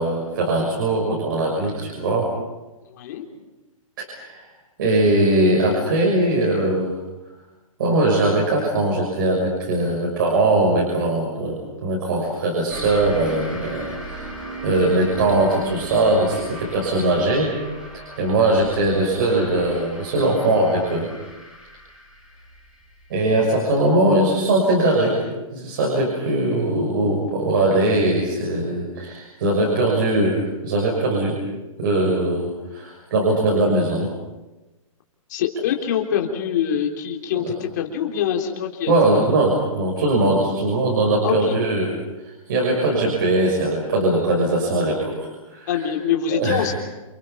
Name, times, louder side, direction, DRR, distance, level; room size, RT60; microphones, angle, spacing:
voice 1, 0.0-2.3 4.0-4.4 4.8-7.0 7.8-14.3 14.6-17.5 17.9-21.1 23.1-25.2 25.5-31.4 31.8-34.1 37.3-37.5 38.9-42.0 42.2-45.9 46.3-46.7, right 2 dB, 40° right, -2 dB, 6.4 m, -20 dB
voice 2, 2.9-3.2 35.3-39.2 41.2-41.6 45.7-46.7, left 9 dB, 30° left, 1 dB, 3.6 m, -24 dB
sound 1, 12.7-23.9, right 2 dB, 5° right, 2.9 m, -37 dB
29.5 x 27.5 x 5.8 m, 1.1 s
hypercardioid pair, 180°, 18 cm